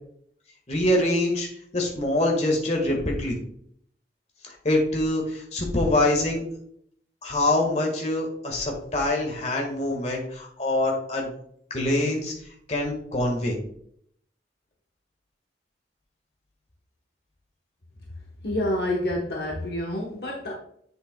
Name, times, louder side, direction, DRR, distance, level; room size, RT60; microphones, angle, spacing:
voice 1, 0.7-1.5 1.7-3.4 4.4-6.4 7.2-11.3 11.7-12.3 12.7-13.6, left 1 dB, 40° left, 1 dB, 1.6 m, -24 dB
voice 2, 18.4-20.5, left 1 dB, 60° left, -1 dB, 1.1 m, -28 dB
7.8 x 6.8 x 2.3 m, 0.68 s
head